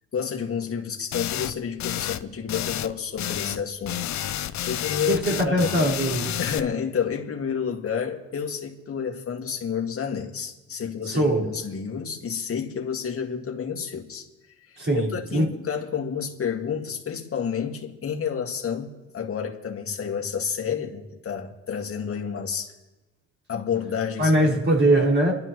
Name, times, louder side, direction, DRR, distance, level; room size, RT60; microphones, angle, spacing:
voice 1, 0.1-4.0 4.7-5.7 6.4-14.3 15.1-22.7 23.5-24.3, left 7 dB, 50° left, 2.1 m, -30 dB
sound 1, 1.1-1.5 1.8-2.2 2.5-2.9 3.2-3.6 3.9-6.6, left 12 dB, 65° left, 0.7 m, -30 dB
voice 2, 5.1-6.3 11.0-11.5 14.8-15.5 24.2-25.3, right 1 dB, 40° right, 5.1 m, -21 dB
28.5 x 12.0 x 3.2 m
cardioid pair, 90°, 30 cm